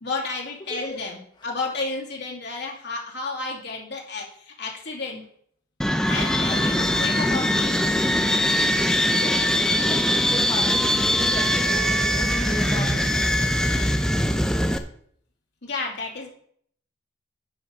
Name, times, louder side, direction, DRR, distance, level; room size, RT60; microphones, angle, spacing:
voice 1, 0.0-5.2 6.1-7.7 9.2-9.9 15.6-16.3, left 3 dB, 60° left, -1 dB, 2.5 m, -32 dB
voice 2, 0.7-1.0 6.4-6.6 9.8-13.3 13.9-14.0, left 1 dB, 25° left, -2 dB, 1.6 m, -34 dB
sound 1, 5.8-14.8, equal, 5° left, 0.6 m, -22 dB
sound 2, 6.0-13.9, left 3 dB, 80° left, 3.2 m, -38 dB
10.0 x 6.5 x 5.0 m, 0.64 s
head